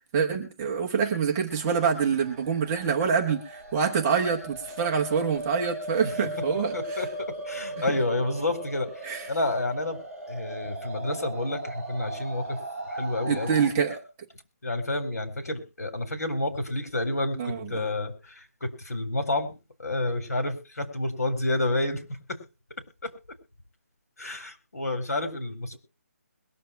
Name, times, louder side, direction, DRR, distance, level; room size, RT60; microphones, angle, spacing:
voice 1, 0.1-7.1 7.8-7.9 9.0-9.2 13.3-14.0 17.4-17.8, right 6 dB, 10° right, 1 dB, 0.9 m, -26 dB
sound 1, 1.5-13.7, right 1 dB, 5° left, 5.3 m, -38 dB
voice 2, 6.7-10.0 10.3-12.6 12.9-13.6 14.6-19.5 19.8-22.4 24.2-25.8, left 2 dB, 85° left, 7 dB, 4.3 m, -30 dB
22.0 x 7.4 x 4.5 m, 0.31 s
hypercardioid pair, 180°, 8 cm